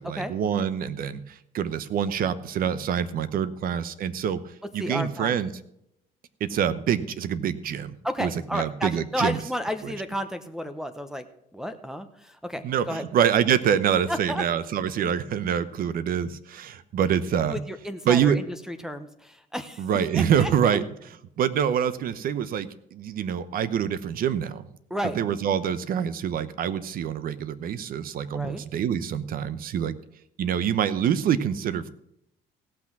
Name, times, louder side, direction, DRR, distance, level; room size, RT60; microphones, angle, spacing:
voice 1, 0.0-4.4 4.7-5.5 6.4-9.4 9.8-9.9 12.6-17.6 18.1-18.4 19.8-20.8 21.4-24.6 25.1-29.9 30.4-31.9, right 8 dB, 60° right, 15 dB, 0.8 m, -26 dB
voice 2, 4.8-5.3 8.0-11.2 11.5-13.1 14.1-14.4 17.5-19.9 20.1-20.8 24.9-25.2 28.3-28.6, equal, 5° right, 6 dB, 0.9 m, -32 dB
16.5 x 6.0 x 6.0 m, 0.77 s
cardioid pair, 110°, 17 cm